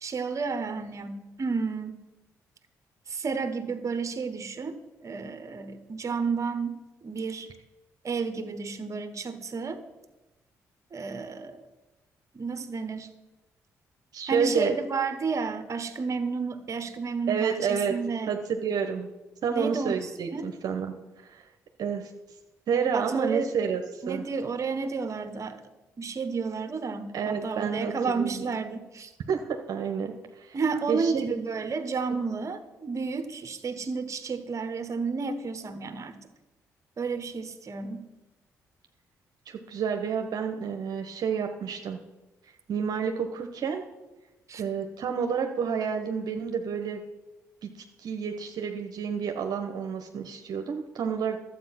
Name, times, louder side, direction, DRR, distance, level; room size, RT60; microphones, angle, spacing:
voice 1, 0.0-2.0 3.1-7.5 8.0-9.8 10.9-11.7 12.3-13.1 14.3-18.3 19.5-20.5 22.9-23.5 24.0-25.6 26.0-29.1 30.5-36.2 37.0-38.1 44.5-44.6, right 4 dB, 45° right, 9 dB, 1.3 m, -31 dB
voice 2, 14.1-14.8 17.3-17.9 18.3-19.1 19.4-21.4 21.8-22.1 22.7-24.2 27.1-28.4 29.3-29.4 29.7-30.6 30.9-31.2 39.5-42.0 42.7-43.8 44.6-47.0 47.6-47.7 48.0-51.4, right 6 dB, 65° right, 4 dB, 1.1 m, -29 dB
11.5 x 8.1 x 5.9 m, 1.1 s
hypercardioid pair, 50°, 7 cm